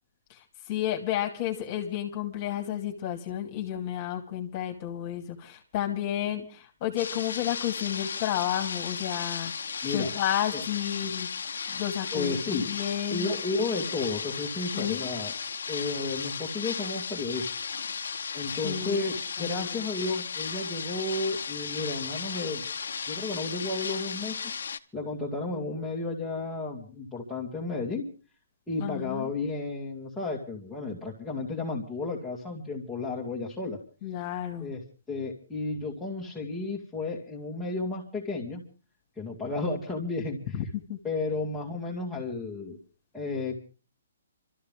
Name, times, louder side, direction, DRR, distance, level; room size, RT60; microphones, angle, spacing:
voice 1, 0.3-11.3 11.7-13.3 14.7-15.1 18.6-19.1 19.4-19.7 28.8-29.3 34.0-34.7 40.5-40.6 40.9-41.0, left 11 dB, 30° left, 3 dB, 2.4 m, -32 dB
sound 1, 7.0-24.8, left 6 dB, 80° left, 1.0 m, -35 dB
voice 2, 9.8-10.1 10.5-10.6 12.1-12.7 13.1-15.3 15.7-17.5 18.3-22.7 23.1-24.4 24.9-28.1 28.7-33.8 34.6-34.8 35.1-38.6 39.2-40.5 41.0-42.8 43.1-43.6, left 3 dB, 5° left, -7 dB, 2.3 m, -32 dB
26.5 x 13.5 x 3.7 m, 0.36 s
hypercardioid pair, 165°, 0 cm